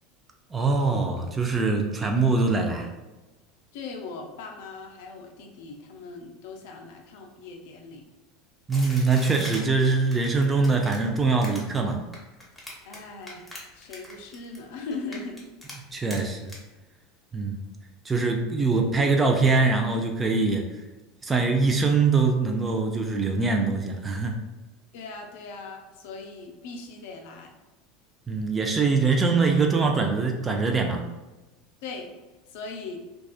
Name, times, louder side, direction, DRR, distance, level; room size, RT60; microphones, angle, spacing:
voice 1, 0.5-2.9 8.7-12.0 15.9-16.5 17.3-17.6 18.0-20.7 21.2-24.4 28.3-31.0, right 4 dB, 20° right, 2 dB, 0.4 m, -23 dB
voice 2, 3.7-8.0 12.8-13.5 13.7-15.4 24.9-27.5 31.8-32.1 32.5-33.0, left 4 dB, 65° left, 3 dB, 0.4 m, -39 dB
sound 1, 8.7-13.0 13.2-14.6 14.9-15.7 16.1-16.2 16.5-16.6, left 1 dB, 5° left, 0.8 m, -41 dB
2.3 x 2.3 x 2.3 m, 1.1 s
hypercardioid pair, 80°, 0 cm